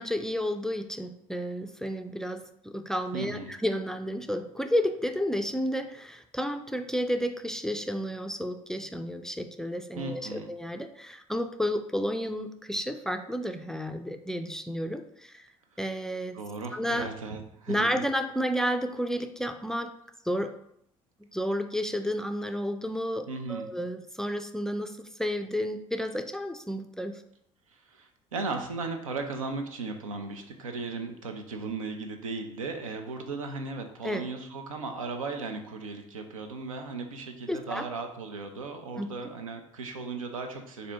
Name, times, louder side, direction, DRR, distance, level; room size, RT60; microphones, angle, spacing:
voice 1, 0.0-15.5 15.8-16.4 16.7-17.1 17.7-19.9 20.3-20.5 21.3-27.2 34.0-34.2 37.5-37.8 39.0-39.1, equal, 5° left, 8 dB, 0.3 m, -31 dB
voice 2, 3.1-3.6 10.0-10.5 16.3-17.9 23.3-23.7 27.7-40.9, right 3 dB, 90° right, 5 dB, 0.4 m, -36 dB
4.1 x 2.6 x 3.3 m, 0.72 s
hypercardioid pair, 60°, 17 cm